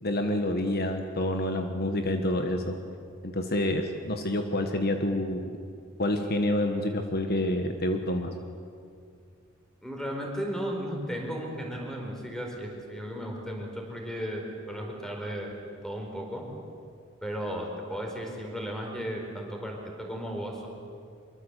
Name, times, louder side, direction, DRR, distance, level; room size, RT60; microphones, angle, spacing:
voice 1, 0.0-2.8 3.2-5.5 6.0-8.3, left 1 dB, 50° left, 6 dB, 1.5 m, -28 dB
voice 2, 9.8-14.4 14.7-15.5 15.8-16.4 17.2-20.7, equal, 5° left, 1 dB, 4.7 m, -35 dB
24.5 x 23.5 x 8.4 m, 2.3 s
head